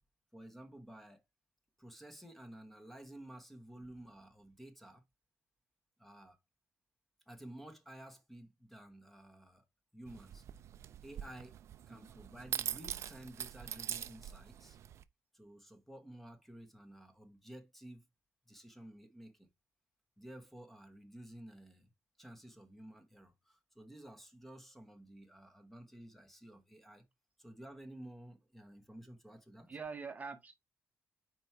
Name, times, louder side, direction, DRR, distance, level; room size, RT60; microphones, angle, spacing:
voice 1, 0.3-1.2 1.8-5.0 6.0-6.4 7.3-9.6 9.9-10.4 11.0-11.6 11.9-14.8 15.3-18.0 18.5-19.5 20.2-21.9 22.2-27.1 27.4-29.8, right 1 dB, 5° left, 1.1 m, -53 dB
sound 1, 10.1-15.0, right 10 dB, 65° right, 0.5 m, -43 dB
voice 2, 29.7-30.5, right 5 dB, 30° right, 0.9 m, -44 dB
5.2 x 4.6 x 4.3 m
cardioid pair, 135°, 5 cm